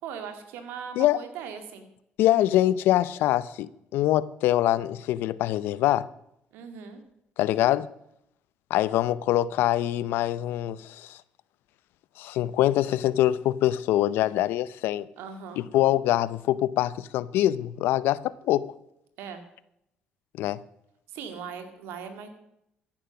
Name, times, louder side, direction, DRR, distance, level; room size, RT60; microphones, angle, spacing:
voice 1, 0.0-1.9 6.5-7.0 15.2-15.6 19.2-19.4 21.1-22.3, right 7 dB, 90° right, 2.3 m, -39 dB
voice 2, 2.2-6.1 7.4-7.9 8.7-11.2 12.2-15.1 15.6-18.7 20.4-20.6, left 13 dB, 85° left, 0.7 m, -24 dB
14.5 x 11.0 x 6.0 m
cardioid pair, 105°, 4 cm